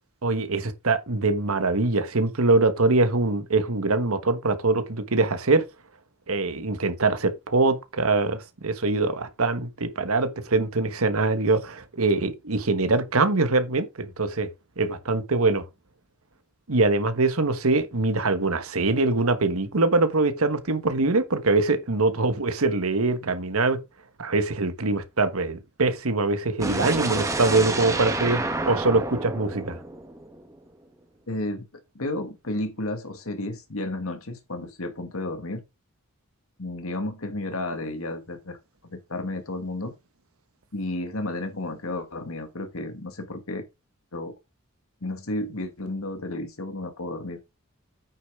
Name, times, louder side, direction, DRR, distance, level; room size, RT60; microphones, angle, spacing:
voice 1, 0.2-5.6 6.3-14.5 14.8-15.6 16.7-23.8 24.2-29.8, right 3 dB, 80° right, 1.3 m, -23 dB
sound 1, 26.6-30.6, right 2 dB, 15° right, 1.4 m, -29 dB
voice 2, 31.3-31.6 32.0-35.6 36.6-38.6 38.9-39.9 40.7-43.7 44.1-44.3 45.0-47.4, left 2 dB, 75° left, 1.8 m, -32 dB
9.0 x 6.6 x 3.7 m
head